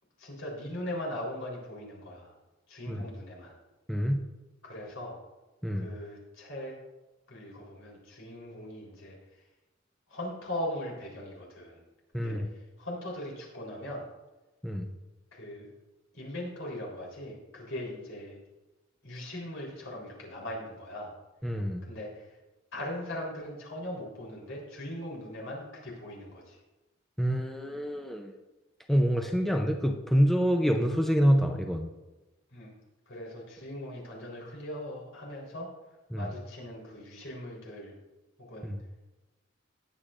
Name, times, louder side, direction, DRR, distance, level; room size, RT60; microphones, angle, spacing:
voice 1, 0.2-2.3 2.7-3.5 4.6-5.2 5.7-6.7 7.3-9.4 10.1-11.8 12.1-14.0 15.3-15.7 16.1-18.4 19.0-21.2 21.8-22.4 22.7-26.6 32.5-32.7 33.1-35.7 36.2-38.0 38.4-38.7, left 1 dB, 75° left, -3 dB, 3.8 m, -40 dB
voice 2, 3.9-4.2 5.6-5.9 12.1-12.5 14.6-14.9 21.4-21.8 27.2-28.4 28.9-31.9 36.1-36.3 38.6-38.8, equal, ahead, 3 dB, 0.6 m, -26 dB
18.5 x 8.4 x 2.5 m, 1.1 s
head